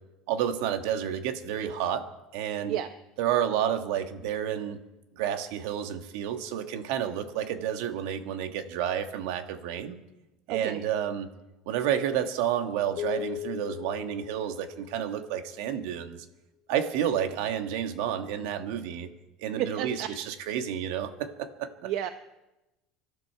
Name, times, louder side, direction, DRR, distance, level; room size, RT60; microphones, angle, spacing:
voice 1, 0.3-2.1 2.3-2.8 3.2-4.8 5.1-10.0 10.5-11.3 11.6-16.2 16.7-19.1 19.4-21.9, right 9 dB, 70° right, 8 dB, 1.5 m, -30 dB
voice 2, 10.5-10.8 19.6-20.1 21.8-22.1, right 12 dB, 55° right, 9 dB, 0.7 m, -31 dB
sound 1, 13.0-15.5, left 14 dB, 45° left, 0.6 m, -38 dB
25.5 x 12.5 x 4.6 m, 1.0 s
cardioid pair, 170°, 0 cm